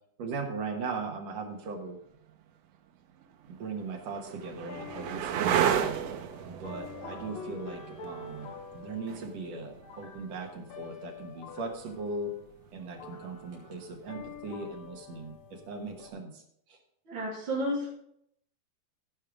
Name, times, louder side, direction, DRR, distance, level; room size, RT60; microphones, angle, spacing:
voice 1, 0.2-2.0 3.5-5.9 6.4-12.3 12.7-16.4 16.7-16.8, right 3 dB, 60° right, 3 dB, 2.1 m, -38 dB
sound 1, 2.3-2.4 3.2-10.8 13.2-13.7, right 9 dB, 85° right, 1.5 m, -33 dB
sound 2, 3.5-16.1, left 5 dB, 60° left, 2.2 m, -47 dB
voice 2, 17.1-17.9, equal, 35° right, -7 dB, 3.2 m, -31 dB
15.0 x 5.5 x 5.0 m, 0.71 s
omnidirectional pair, 4.0 m